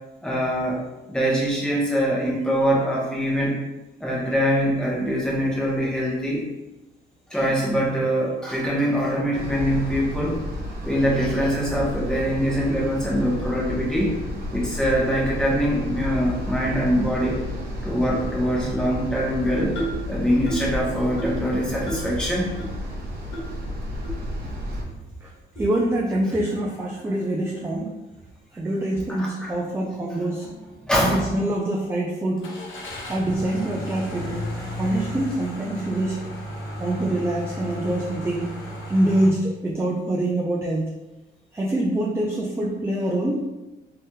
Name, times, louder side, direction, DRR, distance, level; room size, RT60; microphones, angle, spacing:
voice 1, 0.2-0.8 1.1-3.6 4.0-6.5 7.3-10.4 10.8-14.1 14.5-17.4 17.8-19.8 20.1-22.5 29.2-29.5 30.8-31.3, equal, 5° left, -5 dB, 0.9 m, -23 dB
sound 1, 9.3-24.8, left 1 dB, 50° right, 0.8 m, -32 dB
sound 2, 19.7-20.1 20.5-20.7 21.2-21.5 21.9-22.1 22.6-22.7 23.3-23.4 24.0-24.1 24.8-24.9 25.5-25.7, right 2 dB, 70° left, 1.2 m, -31 dB
voice 2, 25.6-28.0 28.5-30.5 31.0-32.5 33.1-36.2 36.8-38.5 38.9-40.9 41.5-43.4, right 1 dB, 15° right, -3 dB, 0.4 m, -25 dB
Car / Engine starting, 32.4-39.3, left 1 dB, 90° left, 0.9 m, -34 dB
3.3 x 2.8 x 2.2 m, 1.0 s
cardioid pair, 115°, 19 cm